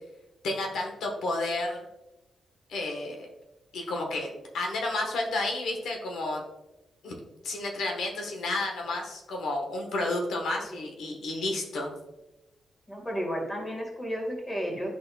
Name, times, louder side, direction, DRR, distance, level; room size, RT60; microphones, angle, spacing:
voice 1, 0.4-1.8 2.7-3.3 3.7-6.4 7.0-7.1 7.4-11.9, left 2 dB, 85° left, 1 dB, 1.1 m, -31 dB
voice 2, 12.9-14.9, equal, 15° left, 0 dB, 1.6 m, -32 dB
10.5 x 4.1 x 2.2 m, 0.98 s
wide cardioid pair, 135°, 0 cm